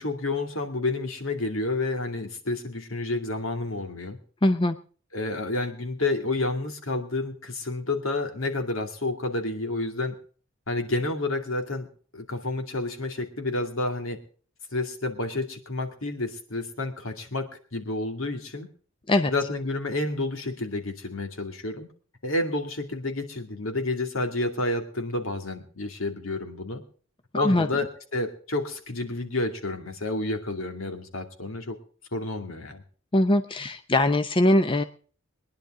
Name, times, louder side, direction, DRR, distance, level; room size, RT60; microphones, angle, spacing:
voice 1, 0.0-4.2 5.1-10.1 10.7-11.9 12.1-14.2 14.7-18.7 19.3-21.9 22.2-26.8 27.3-31.8 32.1-32.8, left 2 dB, 85° left, 6 dB, 2.5 m, -30 dB
voice 2, 4.4-4.8 19.1-19.3 27.3-27.7 33.1-34.8, left 1 dB, 25° left, 8 dB, 0.6 m, -21 dB
22.5 x 10.5 x 3.7 m, 0.42 s
head